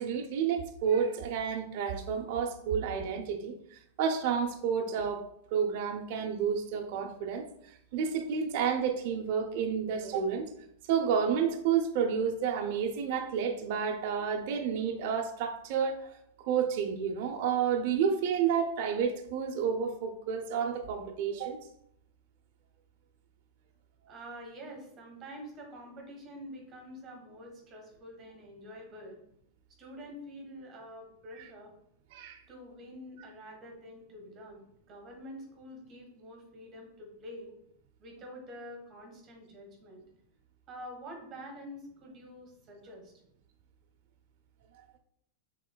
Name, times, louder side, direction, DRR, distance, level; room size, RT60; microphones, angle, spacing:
voice 1, 0.0-10.5 10.8-16.2 16.4-21.7 31.3-31.4 32.1-32.4, right 7 dB, 50° right, 3 dB, 0.5 m, -30 dB
voice 2, 24.1-29.2 29.8-31.7 32.5-37.5 38.0-40.0 40.7-43.1, equal, 30° right, 2 dB, 1.1 m, -47 dB
6.1 x 3.6 x 2.2 m, 0.74 s
supercardioid pair, 150°, 0 cm